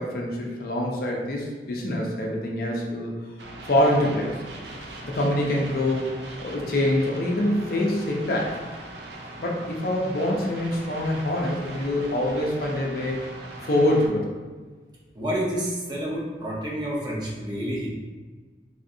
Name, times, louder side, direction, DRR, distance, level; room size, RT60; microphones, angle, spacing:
voice 1, 0.0-3.1 3.6-4.4 5.0-6.1 6.4-8.5 9.4-13.2 13.6-14.3, left 1 dB, 55° left, -1 dB, 0.5 m, -25 dB
sound 1, 3.4-14.1, right 1 dB, 75° right, 0.5 m, -40 dB
voice 2, 15.1-17.9, equal, 25° right, -4 dB, 0.6 m, -29 dB
3.4 x 2.4 x 2.6 m, 1.4 s
head